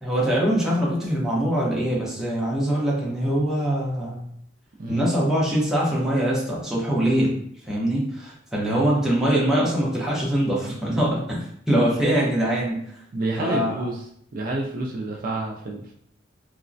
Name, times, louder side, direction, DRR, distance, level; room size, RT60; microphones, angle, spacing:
voice 1, 0.0-4.3 4.9-7.4 7.7-11.4 11.7-12.8 13.4-13.9, right 1 dB, ahead, -5 dB, 0.7 m, -23 dB
voice 2, 13.1-14.0 14.3-15.9, right 2 dB, 45° right, -2 dB, 0.4 m, -29 dB
3.1 x 2.1 x 2.5 m, 0.68 s
head